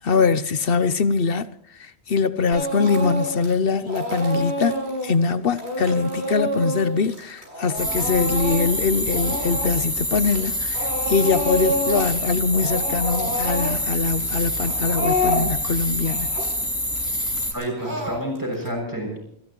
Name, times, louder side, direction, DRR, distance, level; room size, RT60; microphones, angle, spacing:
voice 1, 0.0-1.5 1.8-16.4, left 5 dB, 60° left, 0.9 m, -23 dB
Speech / Crying sobbing, 2.5-3.5 3.8-10.5 10.7-12.2 12.4-18.7, equal, 70° right, 6.8 m, -28 dB
sound 1, 7.8-17.5, left 1 dB, 5° left, 3.1 m, -26 dB
voice 2, 17.5-19.2, equal, 15° right, 7.2 m, -29 dB
29.0 x 14.5 x 3.1 m
omnidirectional pair, 1.1 m